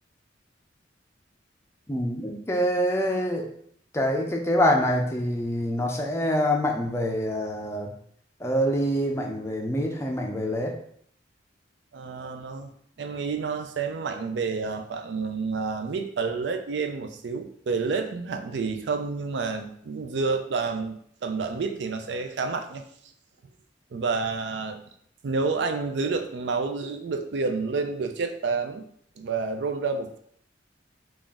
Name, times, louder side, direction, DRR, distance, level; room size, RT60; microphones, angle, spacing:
voice 1, 1.9-3.5 3.9-7.9 8.4-10.7, equal, 15° left, 1 dB, 0.4 m, -25 dB
voice 2, 11.9-12.7 13.0-22.8 23.9-24.8 25.2-28.8 29.2-30.2, right 4 dB, 65° right, 7 dB, 0.4 m, -29 dB
3.9 x 2.4 x 3.5 m, 0.65 s
head